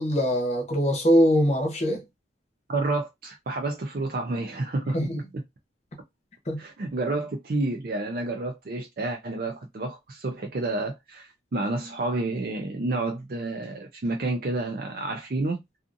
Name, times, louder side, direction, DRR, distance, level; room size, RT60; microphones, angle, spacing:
voice 1, 0.0-2.0 4.9-5.2 6.5-6.6, equal, 35° left, 0.7 m, -22 dB
voice 2, 2.7-5.4 6.6-15.6, right 2 dB, 50° right, 0.4 m, -30 dB
2.5 x 2.5 x 2.5 m
head